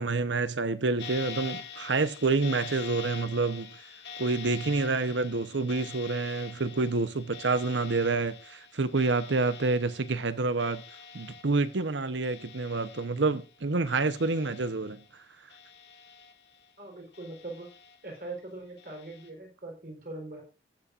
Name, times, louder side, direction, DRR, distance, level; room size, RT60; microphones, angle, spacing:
voice 1, 0.0-3.8 4.2-10.8 11.1-15.0, right 3 dB, 80° right, 0.9 m, -28 dB
sound 1, 1.0-13.6 13.9-15.1 15.5-16.7 17.1-18.2 18.8-19.3, left 6 dB, 65° left, 1.8 m, -45 dB
voice 2, 16.8-17.7 18.0-20.4, right 2 dB, 50° right, 4.1 m, -41 dB
16.5 x 7.3 x 2.5 m
head